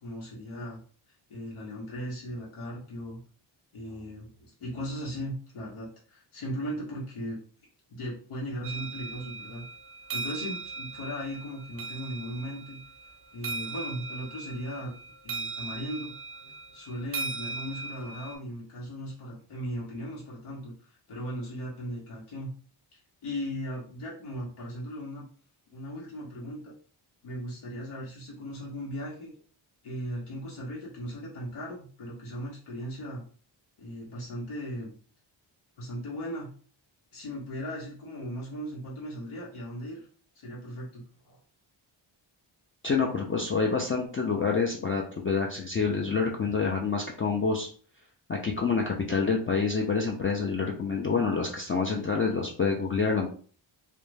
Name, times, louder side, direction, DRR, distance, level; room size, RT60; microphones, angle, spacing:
voice 1, 0.0-0.8 1.3-3.2 3.7-7.4 7.9-9.6 10.1-12.8 13.3-14.9 15.2-16.1 16.4-22.5 22.9-25.3 25.7-26.7 27.2-29.3 29.8-33.2 33.8-34.9 35.8-36.5 37.1-40.1 40.3-41.4, equal, 90° left, -5 dB, 0.9 m, -37 dB
sound 1, 8.6-18.3, right 4 dB, 30° right, 0.5 m, -39 dB
voice 2, 42.8-47.7 48.3-53.3, left 5 dB, 30° left, 0 dB, 0.4 m, -27 dB
2.5 x 2.1 x 3.1 m, 0.43 s
cardioid pair, 80°, 49 cm